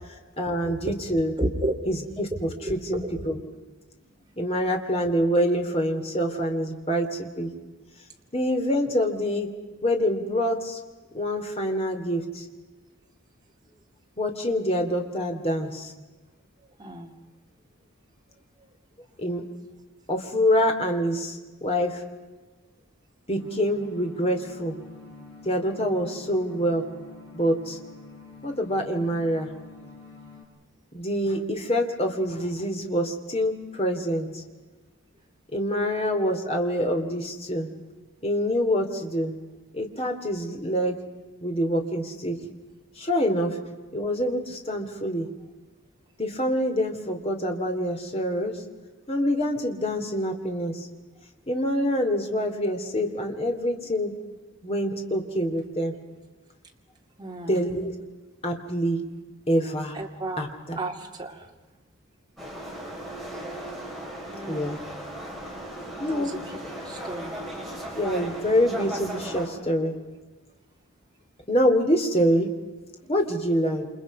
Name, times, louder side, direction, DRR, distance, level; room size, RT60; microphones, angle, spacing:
voice 1, 0.4-1.3 1.9-3.4 4.4-7.5 8.3-9.5 9.8-10.8 11.1-12.5 14.2-15.9 19.2-19.4 20.1-22.0 23.3-24.8 25.4-26.8 27.3-27.8 28.4-29.5 30.9-34.4 35.5-37.7 38.2-39.3 39.7-41.0 41.4-42.4 43.0-43.6 43.9-45.3 46.2-48.6 49.1-50.9 51.5-54.1 54.6-55.9 57.5-57.9 58.4-59.0 59.5-60.0 60.4-60.8 64.5-64.8 66.0-66.3 67.9-70.0 71.5-72.5 73.0-73.9, equal, 30° left, 3 dB, 3.0 m, -26 dB
voice 2, 1.4-1.7 2.6-2.7 16.8-17.1 57.2-57.5 59.9-60.4 60.8-61.4 64.3-64.7 66.1-66.6 66.8-67.3, right 1 dB, 20° right, 1 dB, 2.6 m, -32 dB
sound 1, 23.4-30.4, left 4 dB, 65° left, 6.8 m, -47 dB
sound 2, 62.4-69.5, right 1 dB, ahead, 5.4 m, -36 dB
29.0 x 28.0 x 5.5 m, 1.2 s
head